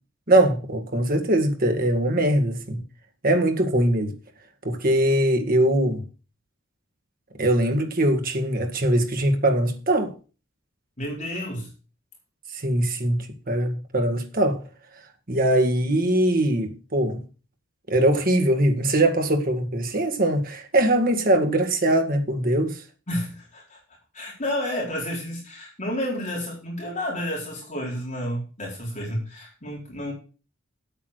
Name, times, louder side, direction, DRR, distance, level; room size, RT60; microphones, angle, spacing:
voice 1, 0.3-2.8 3.2-4.1 4.6-6.0 7.4-10.1 12.5-14.6 15.3-17.2 17.9-22.8, right 1 dB, 50° right, 1.9 m, -22 dB
voice 2, 11.0-11.7 23.1-23.8 24.1-30.1, left 1 dB, 40° left, 4.3 m, -30 dB
8.6 x 8.4 x 6.5 m
head